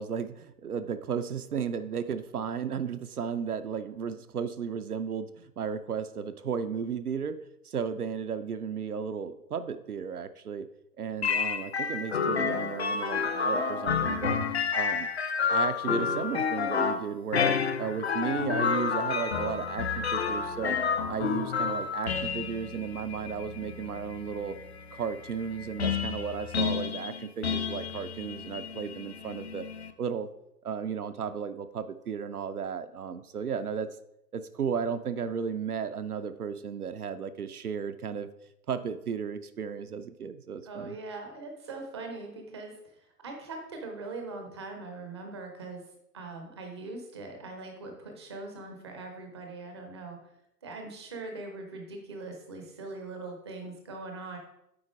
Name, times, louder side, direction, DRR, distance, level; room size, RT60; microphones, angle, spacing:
voice 1, 0.0-7.4 7.6-10.7 11.0-14.4 14.7-15.1 15.5-20.8 21.1-24.6 24.9-29.6 30.0-30.3 30.6-33.9 34.3-38.3 38.7-41.0, right 6 dB, 65° right, 10 dB, 0.6 m, -34 dB
sound 1, 11.2-29.9, left 6 dB, 40° left, 0.6 m, -30 dB
voice 2, 40.6-45.8 46.1-50.3 50.6-54.4, right 3 dB, 15° right, 3 dB, 0.6 m, -41 dB
8.7 x 3.9 x 4.9 m, 0.82 s
figure-of-eight pair, 125°, 49 cm